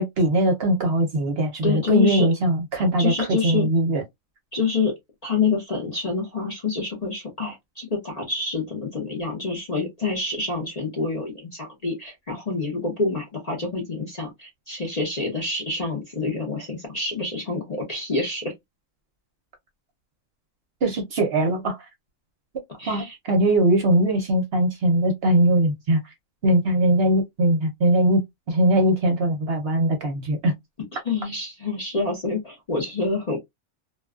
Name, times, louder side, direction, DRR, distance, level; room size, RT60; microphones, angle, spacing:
voice 1, 0.0-4.0 20.8-21.8 22.9-26.0 26.4-28.2 28.5-30.5, right 1 dB, 55° right, 0.8 m, -21 dB
voice 2, 1.6-2.3 3.0-3.7 4.5-4.9 5.2-18.5 22.8-23.2 30.9-33.4, left 4 dB, 40° left, 0.7 m, -27 dB
2.4 x 2.2 x 2.3 m
omnidirectional pair, 1.4 m